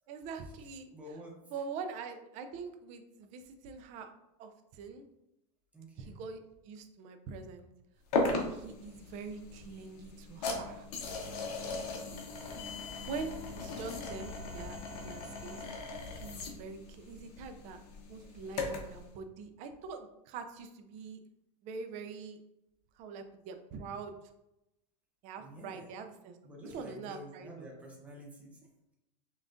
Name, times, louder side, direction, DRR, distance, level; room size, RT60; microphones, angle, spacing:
voice 1, 0.1-0.9 1.5-4.1 4.4-5.0 6.0-6.4 6.6-7.7 8.3-10.9 13.0-15.6 16.1-17.8 18.1-21.2 21.6-22.4 23.0-24.2 25.2-26.4 26.6-27.7, right 5 dB, 35° right, 7 dB, 0.4 m, -44 dB
voice 2, 0.9-1.4 5.7-6.2 12.6-12.8 14.7-14.9 25.4-25.9 26.4-28.9, equal, 5° right, -2 dB, 0.7 m, -50 dB
sound 1, 8.1-19.0, left 3 dB, 80° left, 0.9 m, -38 dB
5.5 x 2.4 x 2.5 m, 0.90 s
supercardioid pair, 155°, 20 cm